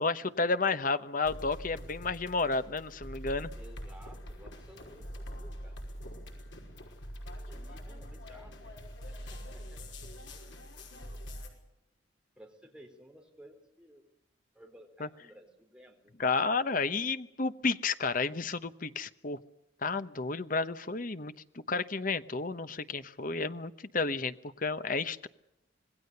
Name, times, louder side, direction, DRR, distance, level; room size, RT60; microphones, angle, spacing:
voice 1, 0.0-3.5 15.0-15.1 16.2-19.4 19.8-25.3, left 4 dB, 45° left, 12 dB, 1.0 m, -31 dB
sound 1, 1.2-11.5, equal, 70° left, 5.3 m, -44 dB
voice 2, 3.5-5.8 7.5-9.8 12.4-14.0 14.5-16.1, equal, 5° right, 3 dB, 3.9 m, -56 dB
26.5 x 19.5 x 6.8 m, 0.85 s
head